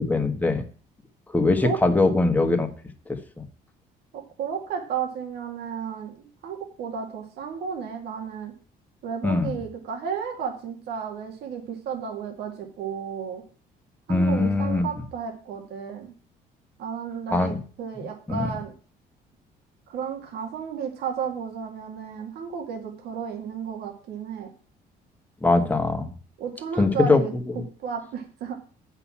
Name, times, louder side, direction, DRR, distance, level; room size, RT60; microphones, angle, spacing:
voice 1, 0.1-0.6 1.3-2.7 3.1-3.4 9.2-9.5 14.1-14.9 17.3-17.6 18.0-18.4 25.4-26.1 26.8-27.2 27.6-27.7, left 3 dB, 10° left, 5 dB, 1.5 m, -22 dB
voice 2, 4.1-8.5 9.0-13.4 14.1-16.1 16.8-18.7 19.9-24.5 26.4-28.5, right 7 dB, 75° right, 2 dB, 2.1 m, -33 dB
8.1 x 5.9 x 7.1 m, 0.39 s
cardioid pair, 110°, 17 cm